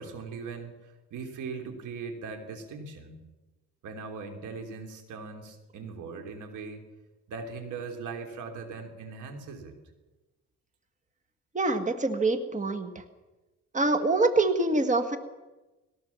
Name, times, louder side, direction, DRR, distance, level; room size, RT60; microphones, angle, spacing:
voice 1, 0.0-3.2 3.8-6.8 7.3-9.7, right 4 dB, 80° right, 5 dB, 3.3 m, -40 dB
voice 2, 11.5-13.0 13.7-15.2, right 2 dB, 25° right, 8 dB, 1.8 m, -25 dB
20.0 x 17.5 x 7.3 m, 1.1 s
cardioid pair, 90°, 30 cm